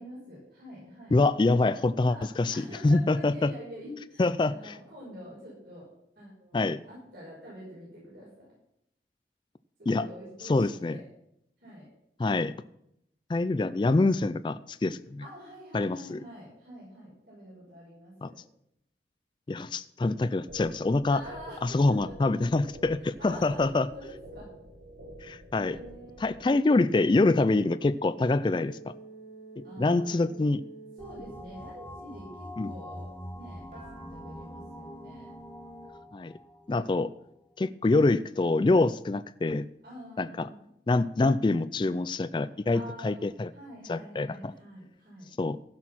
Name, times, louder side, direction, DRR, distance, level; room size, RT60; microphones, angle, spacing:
voice 1, 0.0-1.1 1.7-5.9 6.2-8.5 9.8-11.1 11.6-11.9 15.2-18.4 21.1-21.9 23.2-24.5 25.5-26.4 29.6-30.3 31.0-35.3 39.8-40.6 42.7-45.3, equal, 70° right, -6 dB, 5.8 m, -46 dB
voice 2, 1.1-3.5 4.2-4.8 6.5-6.8 9.9-10.1 10.4-11.0 12.2-12.5 13.3-15.2 15.7-16.2 18.2-18.3 19.5-21.2 21.6-23.9 25.2-25.8 26.2-28.9 29.6-30.6 32.6-32.7 36.1-36.3 36.7-37.1 37.6-39.7 40.2-40.5 40.9-43.5 43.9-44.5 45.4-45.6, left 2 dB, 25° left, 14 dB, 0.3 m, -25 dB
sound 1, 20.5-26.5, right 1 dB, 85° right, 3.3 m, -48 dB
sound 2, 26.8-32.0 33.7-35.9, right 3 dB, 45° right, 4.6 m, -48 dB
sound 3, 31.0-37.4, left 1 dB, 10° left, 0.8 m, -45 dB
15.5 x 6.2 x 6.0 m, 0.77 s
head